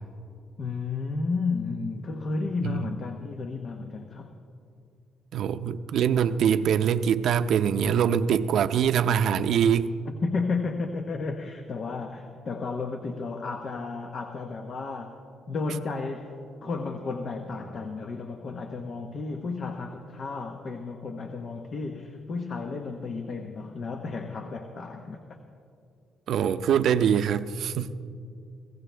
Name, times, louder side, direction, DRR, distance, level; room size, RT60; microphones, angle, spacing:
voice 1, 0.6-4.3 10.1-15.2 15.5-25.4 27.8-27.9, left 4 dB, 50° left, 5 dB, 1.1 m, -33 dB
voice 2, 5.3-9.9 26.3-27.9, right 8 dB, 70° right, 11 dB, 0.6 m, -23 dB
26.0 x 16.0 x 3.4 m, 2.4 s
cardioid pair, 90°, 0 cm